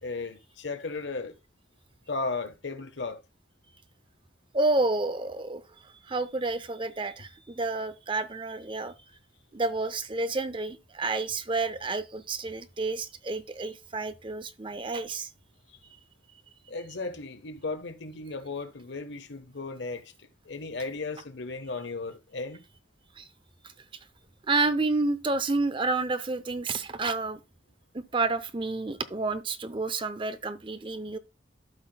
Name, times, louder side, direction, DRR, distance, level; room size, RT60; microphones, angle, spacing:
voice 1, 0.0-1.4 2.1-3.2 16.7-22.6, left 3 dB, 65° left, 1.1 m, -35 dB
voice 2, 4.5-5.6 6.1-8.9 9.5-15.3 23.2-23.3 24.5-27.4 27.9-31.2, right 3 dB, 25° right, 0.6 m, -29 dB
12.5 x 5.9 x 2.2 m
head